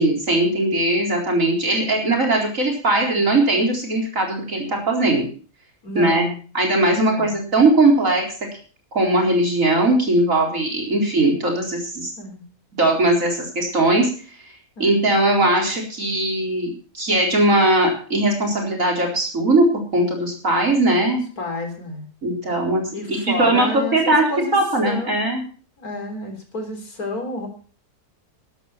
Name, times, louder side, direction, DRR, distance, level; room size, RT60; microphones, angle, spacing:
voice 1, 0.0-5.3 5.9-6.2 6.5-8.2 8.9-12.1 12.7-14.1 14.8-21.2 22.2-22.8 23.1-24.3 24.5-25.4, right 2 dB, 55° right, 0 dB, 4.6 m, -19 dB
voice 2, 5.8-6.4 7.0-7.4 12.2-12.4 14.8-15.1 21.0-22.1 22.9-24.6 24.8-25.3 25.8-27.5, left 2 dB, 70° left, 4 dB, 4.2 m, -30 dB
14.0 x 11.0 x 5.7 m, 0.41 s
omnidirectional pair, 1.6 m